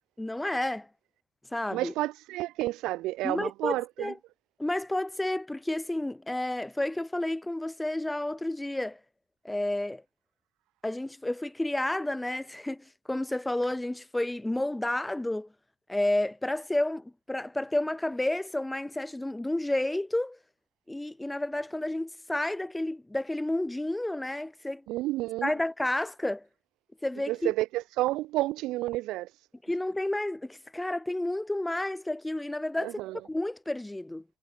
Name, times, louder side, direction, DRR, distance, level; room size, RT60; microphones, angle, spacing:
voice 1, 0.2-0.9 1.5-1.9 3.2-4.1 4.6-9.0 9.4-10.0 10.8-15.5 15.9-20.4 20.9-24.8 25.4-26.4 27.0-27.5 29.7-33.0 33.2-34.2, left 1 dB, 10° left, 3.3 m, -31 dB
voice 2, 1.7-4.1 24.9-25.5 27.3-29.5 32.8-33.2, right 17 dB, 80° right, 2.5 m, -30 dB
supercardioid pair, 70°, 0 cm